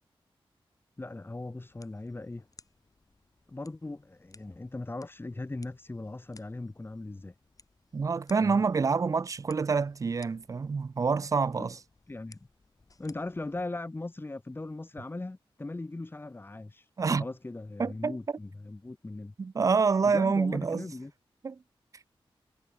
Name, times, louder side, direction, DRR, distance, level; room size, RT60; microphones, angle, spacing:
voice 1, 1.0-2.4 3.5-7.3 8.4-8.6 11.6-11.7 12.1-12.4 13.0-16.9 17.2-19.3 20.1-21.1, left 2 dB, 25° left, 1.9 m, -39 dB
sound 1, 1.7-13.7, left 3 dB, 40° left, 3.8 m, -61 dB
voice 2, 7.9-11.8 17.0-17.2 17.8-18.2 19.4-20.8 21.4-21.6, right 5 dB, 35° right, 0.4 m, -27 dB
wide cardioid pair, 135°, 10 cm